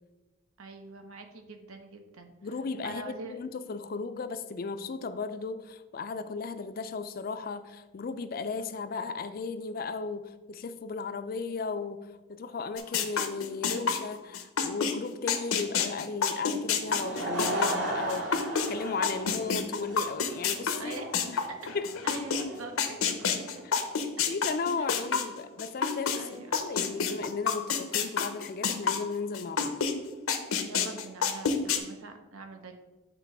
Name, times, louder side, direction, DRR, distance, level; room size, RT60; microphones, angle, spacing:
voice 1, 0.6-2.3 2.8-3.4 20.8-21.1 21.5-21.6 22.0-22.7 23.0-23.3 24.8-24.9 26.1-26.5 30.6-32.8, right 3 dB, 90° right, 6 dB, 0.8 m, -43 dB
voice 2, 2.4-21.0 21.3-21.4 21.7-21.9 24.3-29.8, left 4 dB, 45° left, 11 dB, 0.3 m, -35 dB
sound 1, 12.8-18.7 19.0-26.2 26.5-29.9 30.3-31.8, left 6 dB, 85° left, 0.7 m, -28 dB
Laughter / Crowd, 16.7-23.6, right 2 dB, 60° right, 1.4 m, -36 dB
8.1 x 3.0 x 4.7 m, 1.1 s
head